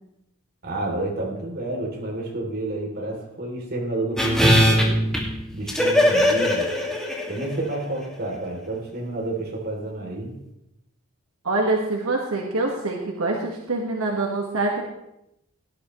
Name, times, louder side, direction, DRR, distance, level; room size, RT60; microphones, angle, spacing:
voice 1, 0.6-5.1 5.5-6.7 7.3-10.3, right 2 dB, 50° right, -1 dB, 3.1 m, -29 dB
sound 1, 4.2-7.7 8.0-8.1, equal, ahead, 2.0 m, -20 dB
voice 2, 11.4-14.8, right 2 dB, 85° right, 0 dB, 1.6 m, -25 dB
17.0 x 11.0 x 3.1 m, 0.84 s
head